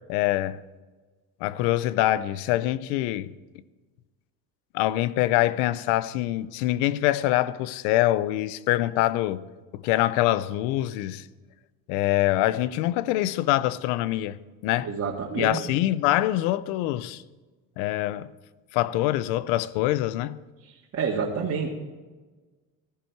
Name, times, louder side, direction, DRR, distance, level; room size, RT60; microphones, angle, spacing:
voice 1, 0.1-0.6 1.4-3.3 4.7-9.5 9.7-11.3 11.9-14.4 14.6-14.9 15.4-17.2 17.8-18.3 18.7-20.4, left 15 dB, 90° left, 0.7 m, -24 dB
voice 2, 14.8-15.6 20.6-21.7, right 6 dB, 40° right, 2.0 m, -29 dB
16.0 x 13.5 x 4.7 m
cardioid pair, 120°, 39 cm